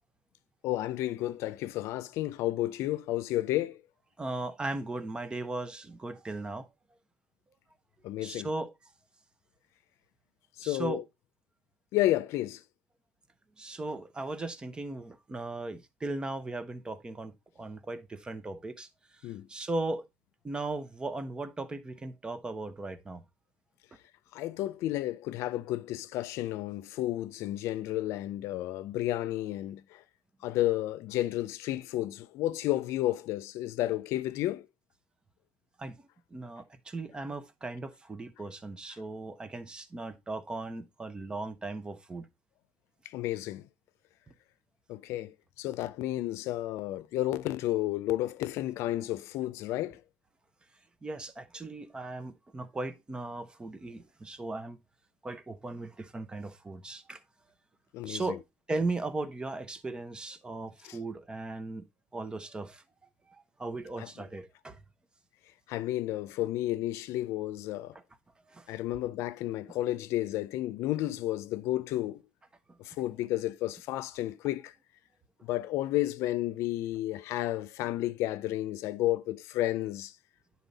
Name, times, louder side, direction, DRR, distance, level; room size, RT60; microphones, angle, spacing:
voice 1, 0.6-3.8 8.0-8.5 10.6-11.0 11.9-12.6 19.2-19.5 24.3-30.0 30.4-34.7 43.0-43.7 44.9-50.0 57.9-58.4 60.8-61.0 64.0-64.1 65.7-68.0 68.7-72.2 72.8-74.7 75.4-80.1, left 15 dB, 80° left, 0.6 m, -32 dB
voice 2, 4.2-6.7 8.2-8.7 10.6-11.0 13.6-18.9 19.5-20.0 20.4-23.2 35.8-36.0 36.3-42.3 51.0-54.8 55.2-57.2 58.1-58.4 58.7-61.8 62.1-62.8 63.6-64.8 68.5-68.7, right 2 dB, 20° right, 0.8 m, -37 dB
10.0 x 4.2 x 4.0 m
cardioid pair, 125°, 5 cm